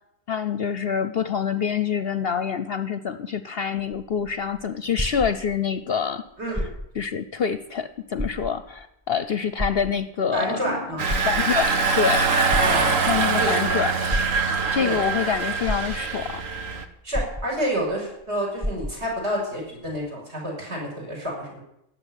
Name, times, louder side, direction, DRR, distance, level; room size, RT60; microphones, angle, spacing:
voice 1, 0.3-6.2 6.9-10.8 11.2-12.3 13.1-14.0 14.7-16.4, left 7 dB, 55° left, 12 dB, 0.9 m, -26 dB
sound 1, 3.8-5.8 6.4-7.1 7.5-7.6 8.1-8.8 9.6-10.4 10.9-11.8 12.5-13.3 14.1-14.8 15.3-15.4 15.7-16.4 17.1-17.9 18.2-18.3 18.6-19.2 20.0-20.1, equal, 15° right, 1.4 m, -31 dB
voice 2, 6.4-6.7 10.3-11.1 12.6-13.0 13.4-13.6 14.8-15.0 17.0-21.6, right 1 dB, 55° right, -1 dB, 6.4 m, -29 dB
Engine, 11.0-16.9, right 4 dB, 75° right, 1.6 m, -23 dB
17.0 x 7.7 x 10.0 m, 0.81 s
omnidirectional pair, 1.4 m